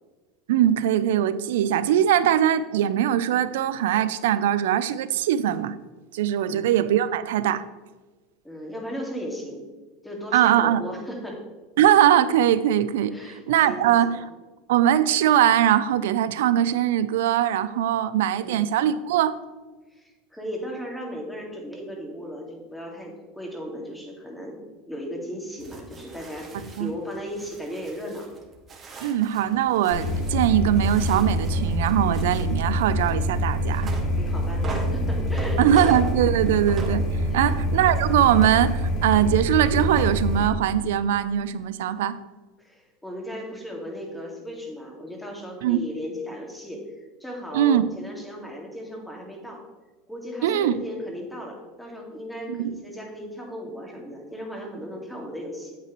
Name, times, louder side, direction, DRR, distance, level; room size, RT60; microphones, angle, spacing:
voice 1, 0.5-5.8 6.1-7.6 10.3-10.8 11.8-14.2 14.7-19.4 26.5-26.9 29.0-33.9 35.6-37.0 37.3-42.2 45.6-45.8 47.5-47.9 50.4-50.8 52.5-52.7, right 11 dB, 85° right, 15 dB, 0.5 m, -21 dB
voice 2, 8.4-9.6 10.0-11.4 13.1-14.2 18.4-18.7 20.0-28.3 34.2-35.8 37.3-37.5 42.6-46.8 47.2-49.6 50.1-55.8, equal, 5° left, -1 dB, 2.1 m, -36 dB
sound 1, 25.6-37.5 37.8-40.0, right 2 dB, 30° right, 1.9 m, -40 dB
sound 2, 29.9-40.5, equal, 55° left, 1.9 m, -25 dB
8.7 x 8.3 x 3.1 m, 1.3 s
supercardioid pair, 115°, 0 cm